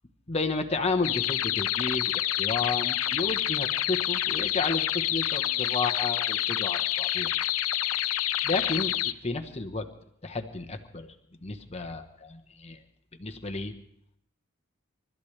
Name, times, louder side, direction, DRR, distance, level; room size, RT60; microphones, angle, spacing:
voice 1, 0.3-7.3 8.4-9.0 9.2-9.9 10.2-11.1 11.4-12.8 13.2-13.7, left 3 dB, 30° left, 5 dB, 1.2 m, -32 dB
sound 1, 1.0-9.1, left 13 dB, 85° left, 0.6 m, -28 dB
29.5 x 13.5 x 3.3 m, 0.71 s
head